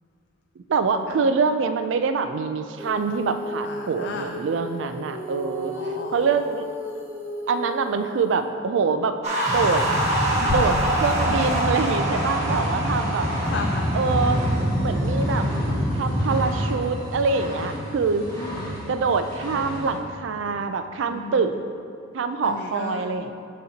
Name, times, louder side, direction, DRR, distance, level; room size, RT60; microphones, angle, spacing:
voice 1, 0.6-5.7 6.1-6.7 7.5-9.2 9.5-9.8 10.5-13.3 13.9-14.4 14.8-15.5 15.9-18.3 18.9-21.5 22.1-23.3, right 5 dB, 65° right, 9 dB, 0.4 m, -25 dB
Female singing, 2.8-8.5, equal, 10° right, 0.8 m, -35 dB
voice 2, 3.6-4.3 5.7-6.3 10.4-10.7 12.8-13.0 13.4-13.9 18.2-18.7 21.1-21.5 22.4-23.1, left 4 dB, 55° left, 3 dB, 0.3 m, -33 dB
sound 1, 9.2-14.5, right 1 dB, 35° right, 1.2 m, -26 dB
sound 2, 9.5-20.0, equal, 20° left, 1.6 m, -27 dB
12.0 x 4.2 x 2.8 m, 2.4 s
head